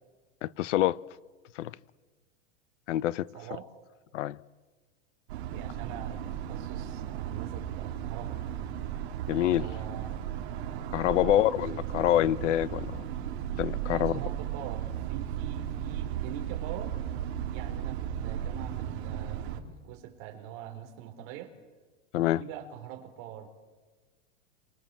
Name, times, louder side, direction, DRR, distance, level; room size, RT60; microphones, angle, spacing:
voice 1, 0.4-1.0 1.6-1.7 2.9-3.3 4.1-4.4 9.3-9.7 10.9-13.0 13.6-14.2 22.1-22.4, left 13 dB, 85° left, 1.0 m, -26 dB
voice 2, 3.3-3.7 5.5-8.4 9.3-10.3 11.2-12.2 13.9-17.0 17.4-21.5 22.1-23.5, right 10 dB, 35° right, 4.1 m, -44 dB
sound 1, 5.3-19.6, right 10 dB, 60° right, 3.4 m, -35 dB
27.5 x 24.5 x 7.6 m
supercardioid pair, 170°, 36 cm